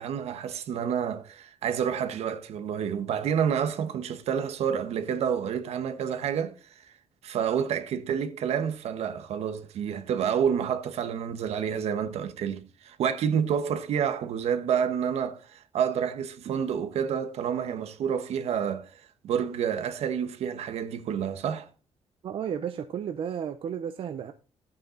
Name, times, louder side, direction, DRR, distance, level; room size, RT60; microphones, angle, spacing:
voice 1, 0.0-6.9 7.2-21.7, right 8 dB, 70° right, 1.2 m, -29 dB
voice 2, 22.2-24.3, right 8 dB, 55° right, 0.7 m, -33 dB
11.5 x 8.8 x 3.9 m
cardioid pair, 155°, 11 cm